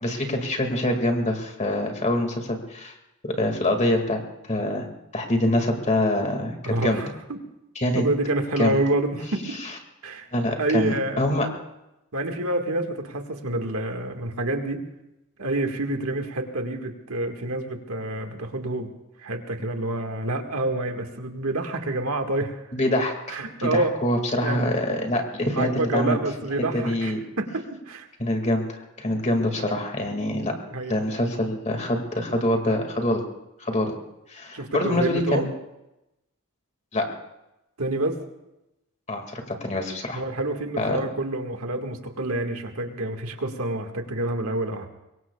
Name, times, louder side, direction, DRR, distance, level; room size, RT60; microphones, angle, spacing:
voice 1, 0.0-3.0 3.2-4.2 4.5-4.9 5.1-7.0 7.8-8.0 8.6-8.7 9.6-9.7 10.3-11.5 22.7-26.2 26.7-27.2 28.2-30.5 30.9-33.2 33.6-34.0 34.3-35.5 36.9-37.1 39.1-40.2 40.8-41.0, left 1 dB, 30° left, 4 dB, 2.2 m, -25 dB
voice 2, 6.6-7.4 7.9-9.5 10.0-10.3 10.6-11.3 12.1-14.8 15.4-18.9 19.2-22.6 23.3-24.0 24.4-24.7 25.5-28.1 30.7-31.0 34.5-35.5 37.8-38.2 40.1-44.9, right 2 dB, 75° right, 4 dB, 1.9 m, -28 dB
25.0 x 22.0 x 2.4 m, 0.91 s
head